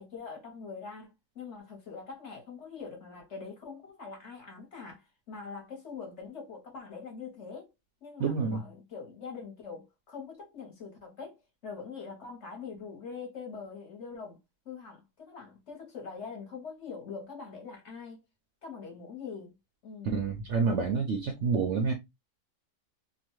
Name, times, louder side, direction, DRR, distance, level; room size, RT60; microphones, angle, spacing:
voice 1, 0.0-7.7 8.0-14.4 14.6-18.2 18.6-19.6 19.8-20.2, left 5 dB, 50° left, 1.1 m, -43 dB
voice 2, 8.2-8.6 20.0-21.9, right 5 dB, 70° right, 0.7 m, -28 dB
2.9 x 2.2 x 2.9 m
omnidirectional pair, 1.7 m